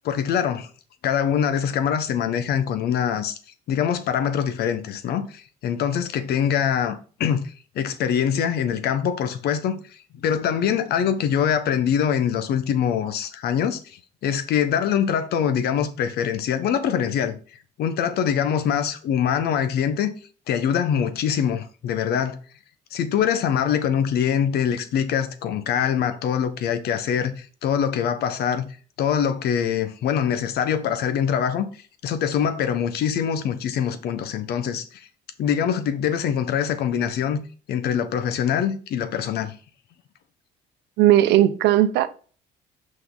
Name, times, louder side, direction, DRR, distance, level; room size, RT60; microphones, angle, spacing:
voice 1, 0.0-0.7 1.0-3.4 3.7-9.8 10.1-17.4 17.8-20.1 20.5-22.4 22.9-28.7 29.0-31.7 32.0-35.1 35.4-39.5, left 8 dB, 70° left, 1.0 m, -24 dB
voice 2, 41.0-42.1, right 13 dB, 85° right, 0.7 m, -17 dB
6.0 x 5.3 x 3.9 m
cardioid pair, 110°, 17 cm